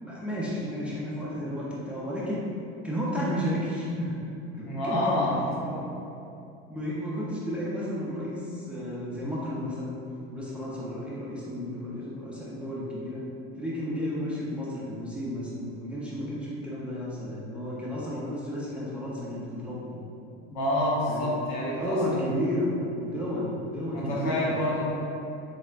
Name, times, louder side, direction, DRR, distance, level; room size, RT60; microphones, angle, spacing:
voice 1, 0.0-2.5 2.8-4.2 4.5-5.3 5.6-5.7 6.7-10.0 10.3-13.2 13.5-20.0 21.1-21.3 21.6-24.4 24.6-24.8, equal, 5° right, -7 dB, 0.4 m, -32 dB
voice 2, 4.6-5.9 20.5-22.3 23.9-24.8, left 1 dB, 70° left, -5 dB, 1.0 m, -28 dB
4.2 x 2.0 x 2.4 m, 2.7 s
supercardioid pair, 100°, 30 cm